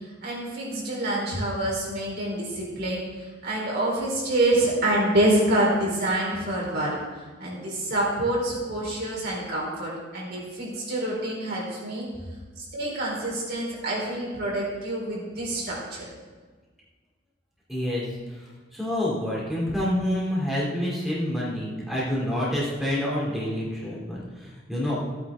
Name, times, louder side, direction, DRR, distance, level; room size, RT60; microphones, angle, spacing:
voice 1, 0.0-7.0 7.4-12.1 12.6-16.1, right 1 dB, 60° right, -4 dB, 4.3 m, -27 dB
voice 2, 17.7-18.4 18.7-25.0, left 1 dB, ahead, -7 dB, 3.0 m, -28 dB
15.5 x 9.3 x 3.7 m, 1.4 s
head